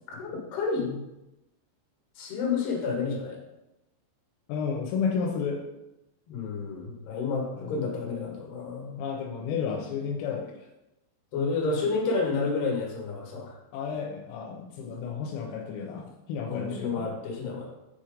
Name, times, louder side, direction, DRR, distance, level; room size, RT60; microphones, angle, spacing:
voice 1, 0.1-1.0 2.2-3.4 6.3-9.0 11.3-13.6 16.5-17.7, left 4 dB, 65° left, -1 dB, 3.0 m, -30 dB
voice 2, 4.5-5.6 7.5-7.8 9.0-10.4 13.7-17.1, left 6 dB, 85° left, 0 dB, 3.4 m, -32 dB
7.9 x 2.9 x 5.0 m, 0.94 s
omnidirectional pair, 5.9 m